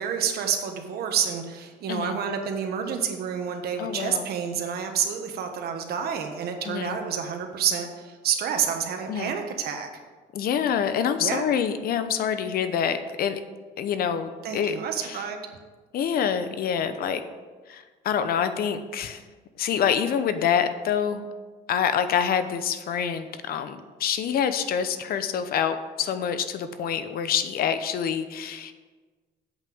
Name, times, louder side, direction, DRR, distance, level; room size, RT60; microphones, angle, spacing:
voice 1, 0.0-9.9 11.2-11.5 14.4-15.4, right 7 dB, 65° right, 5 dB, 1.4 m, -29 dB
voice 2, 3.8-4.3 6.6-7.0 9.1-9.3 10.3-13.4 13.8-14.7 15.0-15.2 15.9-17.2 17.7-19.2 19.6-21.3 21.7-28.7, left 8 dB, 60° left, 10 dB, 0.8 m, -26 dB
8.1 x 5.6 x 7.8 m, 1.4 s
cardioid pair, 110°, 17 cm